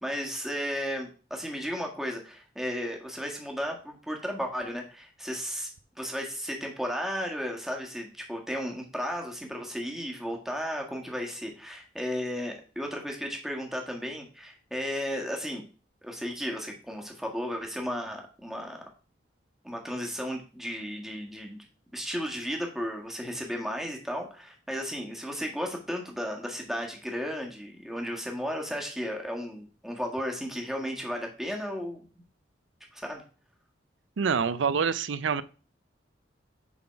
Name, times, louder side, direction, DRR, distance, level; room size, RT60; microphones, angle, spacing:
voice 1, 0.0-5.7 6.0-15.6 16.0-18.8 19.6-21.6 21.9-32.1 32.9-33.2, equal, ahead, 1 dB, 1.5 m, -34 dB
voice 2, 34.2-35.4, right 6 dB, 85° right, 16 dB, 0.5 m, -26 dB
7.2 x 4.0 x 5.7 m, 0.37 s
head